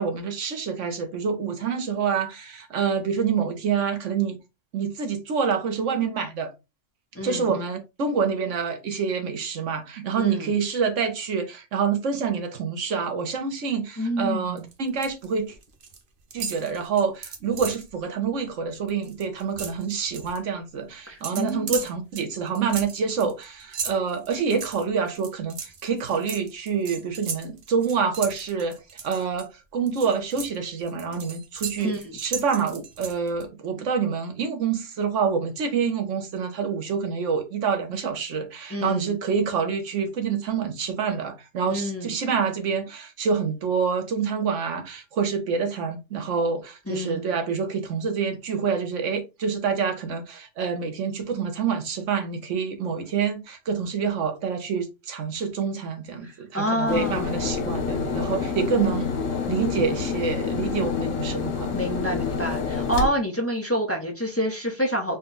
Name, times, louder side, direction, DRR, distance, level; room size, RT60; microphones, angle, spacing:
voice 1, 0.0-4.4 4.7-6.5 7.2-15.5 16.3-59.1 59.5-61.7, right 6 dB, 75° right, 1.2 m, -27 dB
voice 2, 7.1-7.5 10.2-10.5 14.0-14.6 21.1-21.8 31.8-32.2 38.7-39.1 41.7-42.1 46.9-47.3 56.2-57.4 61.7-65.2, equal, 15° left, 0.8 m, -28 dB
sound 1, 14.6-15.2 15.5-16.0 16.3-17.9 18.3-18.5 18.8-20.4 21.2-29.4 29.9-33.4, right 6 dB, 50° right, 0.8 m, -36 dB
sound 2, 56.9-63.1, left 5 dB, 90° left, 1.1 m, -27 dB
4.0 x 2.2 x 3.9 m
omnidirectional pair, 1.3 m